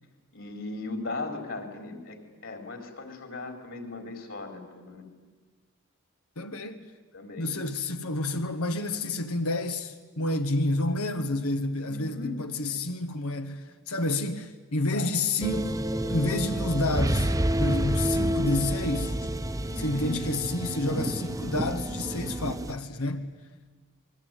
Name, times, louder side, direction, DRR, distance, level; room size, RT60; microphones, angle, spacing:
voice 1, 0.3-2.2 2.4-5.0 7.1-7.5 11.8-12.3 14.9-15.1 19.6-20.2, left 3 dB, 60° left, 4.3 m, -37 dB
voice 2, 6.4-6.9 7.4-19.3 19.7-23.3, left 2 dB, 85° left, 1.6 m, -29 dB
sound 1, 15.4-22.7, right 1 dB, 15° right, 0.9 m, -29 dB
28.0 x 22.0 x 9.3 m
head